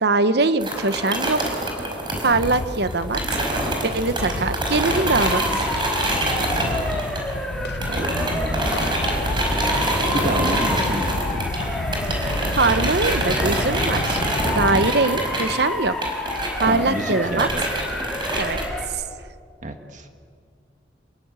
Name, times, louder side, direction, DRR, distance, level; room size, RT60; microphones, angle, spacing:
voice 1, 0.0-1.6 2.2-3.2 3.8-5.6 12.6-14.2 14.6-15.9 16.6-17.5 18.3-18.6 18.9-19.0, right 3 dB, 60° right, 11 dB, 1.0 m, -22 dB
sound 1, 0.6-7.5 7.8-18.7, right 1 dB, 25° right, 5.1 m, -26 dB
sound 2, 2.3-14.9, left 2 dB, 65° left, 0.8 m, -30 dB
Motor vehicle (road) / Siren, 5.1-18.8, left 1 dB, ahead, 3.2 m, -29 dB
voice 2, 7.9-8.9 10.1-11.4 14.7-14.8 16.6-17.6 19.6-20.1, right 1 dB, 40° right, 5 dB, 1.6 m, -29 dB
27.5 x 21.5 x 8.3 m, 2.1 s
head